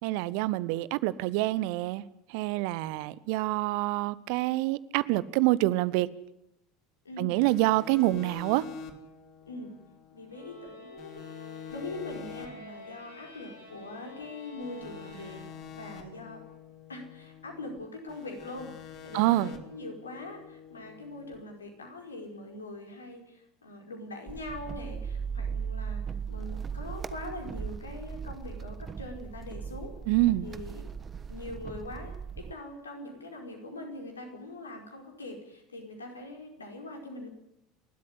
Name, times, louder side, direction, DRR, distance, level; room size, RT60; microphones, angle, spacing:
voice 1, 0.0-2.0 2.3-6.1 7.2-8.6 19.1-19.5 30.1-30.5, right 18 dB, 55° right, 0.9 m, -26 dB
voice 2, 7.0-7.4 9.5-9.8 10.1-11.3 11.7-15.4 15.7-16.4 16.9-29.9 30.4-30.8 31.3-37.3, left 2 dB, 80° left, 4.9 m, -42 dB
sound 1, 7.4-10.7 11.0-14.2 14.6-17.8 18.1-21.3, left 7 dB, 45° left, 3.1 m, -47 dB
sound 2, 10.3-16.0, left 3 dB, 85° right, 6.2 m, -49 dB
sound 3, 24.3-32.5, right 6 dB, 25° right, 1.3 m, -38 dB
29.5 x 13.0 x 9.8 m
figure-of-eight pair, 75°, 0 cm